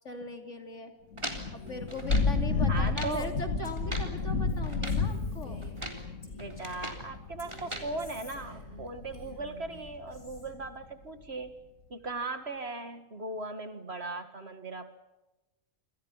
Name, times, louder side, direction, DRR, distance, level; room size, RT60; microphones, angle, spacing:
voice 1, 0.0-0.9 1.5-5.7, left 3 dB, 60° left, 5 dB, 3.5 m, -40 dB
Thunder / Rain, 1.1-10.7, left 4 dB, 80° left, 2.4 m, -32 dB
sound 1, 1.2-2.4 2.8-3.2 3.7-4.2 4.6-5.1 5.6-6.1 6.4-7.1 7.5-7.9, right 1 dB, 20° right, 3.7 m, -40 dB
Female speech woman speaking, 1.5-6.9 7.4-10.5, left 1 dB, 35° left, 5.8 m, -52 dB
voice 2, 2.7-3.3 6.3-11.6 11.9-15.0, right 3 dB, 50° right, 9 dB, 2.2 m, -38 dB
28.0 x 27.0 x 5.7 m, 1.0 s
omnidirectional pair, 1.4 m